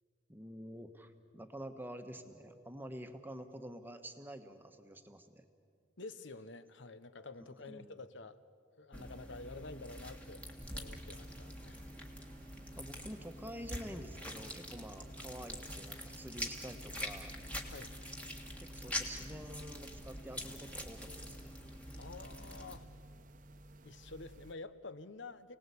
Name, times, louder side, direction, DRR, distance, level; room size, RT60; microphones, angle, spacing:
voice 1, 0.3-5.4 7.7-8.0 12.8-17.3 18.6-21.5, equal, 10° right, 7 dB, 1.3 m, -48 dB
voice 2, 6.0-8.4 8.8-11.9 17.6-17.9 18.8-19.4 22.0-22.9 23.8-25.6, left 3 dB, 65° left, 13 dB, 0.9 m, -49 dB
sound 1, 8.9-22.8, equal, 5° left, 1.8 m, -45 dB
sound 2, 10.8-24.5, right 1 dB, 40° right, 1.0 m, -55 dB
29.5 x 19.0 x 8.4 m, 2.4 s
head